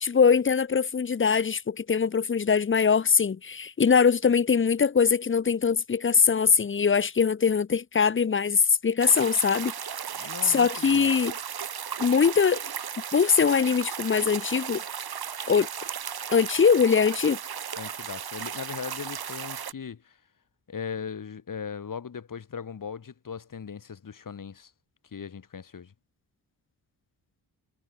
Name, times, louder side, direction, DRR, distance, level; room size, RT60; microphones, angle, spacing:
voice 1, 0.0-9.7 10.2-11.3 12.0-12.6 13.1-14.8 15.5-15.7 16.3-17.4, left 6 dB, 30° left, 0.8 m, -22 dB
sound 1, 9.0-19.7, right 8 dB, 65° right, 2.3 m, -35 dB
voice 2, 10.2-11.1 17.8-20.2 20.7-24.7 25.1-25.9, left 6 dB, 50° left, 3.9 m, -38 dB
wide cardioid pair, 175°, 40 cm